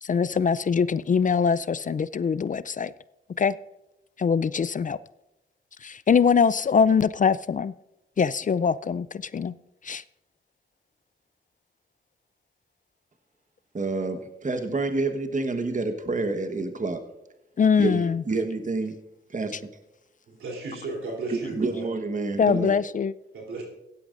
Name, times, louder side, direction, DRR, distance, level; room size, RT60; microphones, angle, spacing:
voice 1, 0.0-2.9 3.4-3.6 4.2-5.0 5.8-7.7 8.2-9.5 9.8-10.0 17.6-18.2 19.5-19.6 22.4-23.1, left 6 dB, 40° left, 0.4 m, -23 dB
voice 2, 13.7-17.0 17.8-19.0 19.3-19.6 21.3-22.7, right 3 dB, 40° right, 1.2 m, -28 dB
voice 3, 20.3-21.8 23.3-23.6, right 3 dB, 90° right, 3.3 m, -34 dB
16.5 x 11.5 x 2.5 m
cardioid pair, 50°, 20 cm